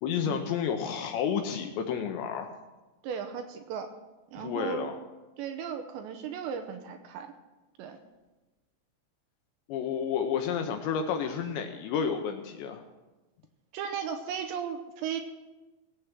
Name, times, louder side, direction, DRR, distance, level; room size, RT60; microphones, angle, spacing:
voice 1, 0.0-2.5 4.4-5.0 9.7-12.8, left 7 dB, 75° left, 5 dB, 2.7 m, -31 dB
voice 2, 3.0-3.9 4.3-4.9 5.4-7.3 7.8-8.0 13.7-15.2, right 7 dB, 80° right, 6 dB, 2.8 m, -36 dB
19.0 x 8.3 x 6.0 m, 1.1 s
omnidirectional pair, 5.7 m